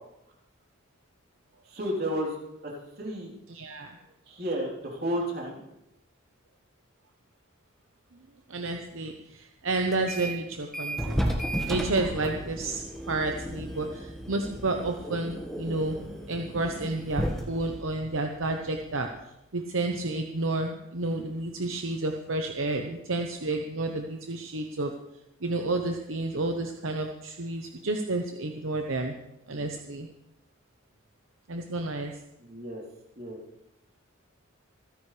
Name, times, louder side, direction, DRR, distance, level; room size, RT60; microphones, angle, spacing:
voice 1, 1.7-2.4 2.6-2.7 3.0-3.3 4.3-5.6 32.4-32.8 33.2-33.4, equal, 45° right, -2 dB, 3.6 m, -32 dB
voice 2, 3.5-3.9 8.5-11.3 11.7-16.0 16.3-19.1 19.5-24.9 25.4-29.1 29.5-30.1 31.5-32.1, right 2 dB, 70° right, 4 dB, 1.0 m, -30 dB
sound 1, 9.9-10.4 10.7-19.2, equal, ahead, 1.5 m, -34 dB
26.0 x 10.0 x 3.3 m, 0.87 s
head